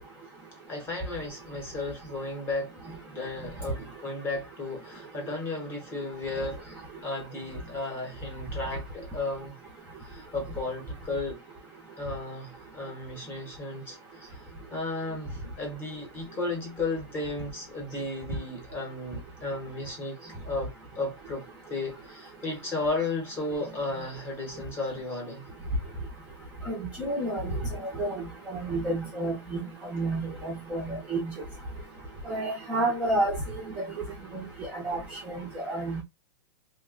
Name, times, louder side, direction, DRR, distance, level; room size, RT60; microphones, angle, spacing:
voice 1, 0.7-2.7 3.1-6.6 7.0-9.6 10.0-11.4 12.0-25.5, left 2 dB, 15° left, 0.9 m, -34 dB
voice 2, 26.7-27.5 28.0-28.2 28.5-29.6 29.9-31.3 32.3-33.3 34.7-35.0 35.3-36.0, right 2 dB, 10° right, 0.6 m, -30 dB
2.8 x 2.2 x 3.6 m
supercardioid pair, 175°, 15 cm